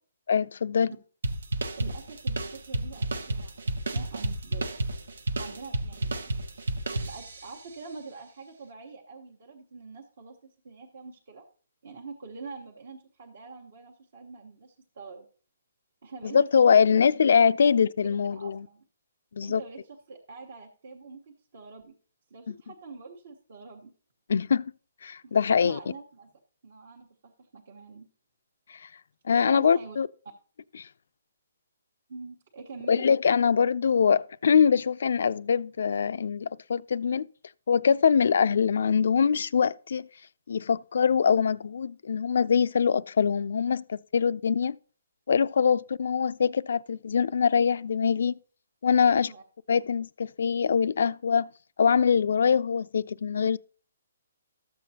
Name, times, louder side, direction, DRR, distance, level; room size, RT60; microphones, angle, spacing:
voice 1, 0.3-0.9 16.2-18.6 19.3-19.6 22.5-22.6 24.3-24.7 25.0-25.8 29.3-30.1 30.8-30.9 32.9-37.3 37.7-40.1 40.5-44.8 45.3-48.3 48.8-49.3 49.7-51.5 51.8-53.6, left 6 dB, 60° left, 0.3 m, -23 dB
sound 1, 1.2-7.6, right 2 dB, 80° right, 1.0 m, -31 dB
voice 2, 1.8-4.7 5.4-6.2 7.0-11.5 11.8-15.3 16.0-16.8 17.1-17.3 17.6-17.7 18.0-18.8 19.4-21.9 22.3-23.9 25.2-26.3 26.6-28.1 29.5-30.0 32.1-33.1 49.1-49.4, right 4 dB, 50° right, 1.1 m, -45 dB
13.0 x 7.5 x 2.8 m
hypercardioid pair, 170°, 0 cm